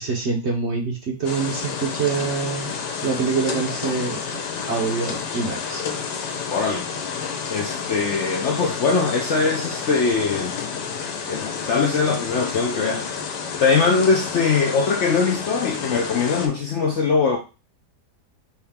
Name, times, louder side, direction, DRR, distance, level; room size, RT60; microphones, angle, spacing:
voice 1, 0.0-2.7 3.0-5.9, right 5 dB, 55° right, 0.8 m, -25 dB
sound 1, 1.2-16.5, left 6 dB, 85° left, 1.4 m, -30 dB
voice 2, 6.5-6.8 7.5-10.5 11.3-13.1 13.5-17.4, left 4 dB, 65° left, 0.7 m, -21 dB
4.7 x 2.9 x 3.5 m
omnidirectional pair, 1.8 m